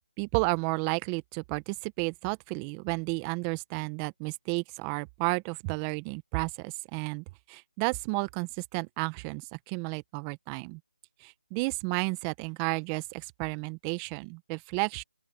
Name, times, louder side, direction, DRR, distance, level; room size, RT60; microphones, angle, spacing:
voice 1, 0.2-10.8 11.2-15.0, right 29 dB, 15° right, 1.3 m, -32 dB
open air
figure-of-eight pair, 160°, 5 cm